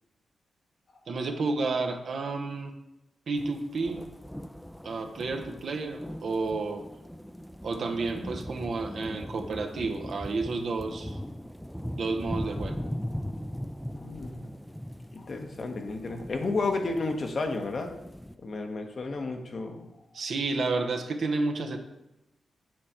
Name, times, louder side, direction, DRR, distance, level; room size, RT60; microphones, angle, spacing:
voice 1, 1.1-2.7 3.3-4.1 4.8-6.9 7.6-11.2 11.9-12.8 20.1-21.8, right 3 dB, 70° right, 4 dB, 0.7 m, -31 dB
sound 1, 3.4-18.3, equal, 5° left, 0.4 m, -39 dB
voice 2, 13.9-14.4 15.1-17.9 18.4-19.8, left 3 dB, 55° left, 4 dB, 0.9 m, -32 dB
7.4 x 3.3 x 4.3 m, 0.93 s
supercardioid pair, 50°, 0 cm